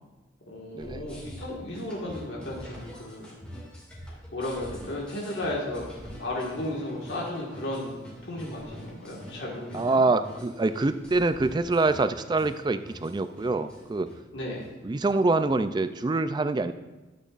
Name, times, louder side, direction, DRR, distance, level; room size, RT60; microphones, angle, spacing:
voice 1, 0.5-3.3 4.3-5.9 6.2-8.0 8.2-10.0 14.3-14.6, left 1 dB, 65° left, -4 dB, 1.8 m, -34 dB
sound 1, 0.8-16.1, equal, 5° left, 2.3 m, -46 dB
voice 2, 9.7-14.1 14.8-16.7, right 3 dB, 25° right, 11 dB, 0.3 m, -25 dB
12.0 x 8.4 x 2.5 m, 1.1 s
head